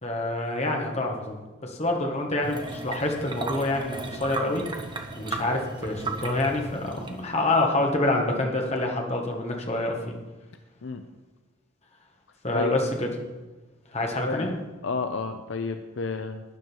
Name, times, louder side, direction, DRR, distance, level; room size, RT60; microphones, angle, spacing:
voice 1, 0.0-4.6 5.2-10.0 12.4-13.1 13.9-14.5, left 2 dB, 30° left, 1 dB, 1.7 m, -27 dB
sound 1, 2.4-7.4, right 3 dB, 25° right, 1.0 m, -35 dB
voice 2, 14.8-16.4, left 4 dB, 65° left, 7 dB, 0.6 m, -31 dB
12.0 x 9.3 x 4.6 m, 1.2 s
head